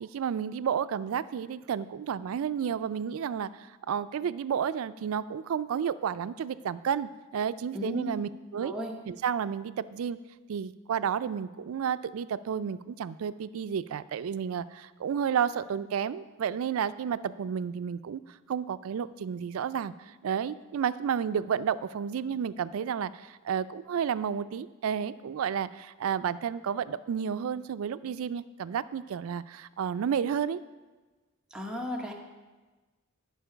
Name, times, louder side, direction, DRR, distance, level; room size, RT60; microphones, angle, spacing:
voice 1, 0.0-8.7 9.1-10.2 10.5-18.2 18.5-30.6, right 7 dB, 80° right, 15 dB, 0.3 m, -31 dB
voice 2, 7.7-8.1 8.6-8.9 31.5-32.1, left 1 dB, 5° right, -1 dB, 1.0 m, -35 dB
11.0 x 4.6 x 5.6 m, 1.2 s
head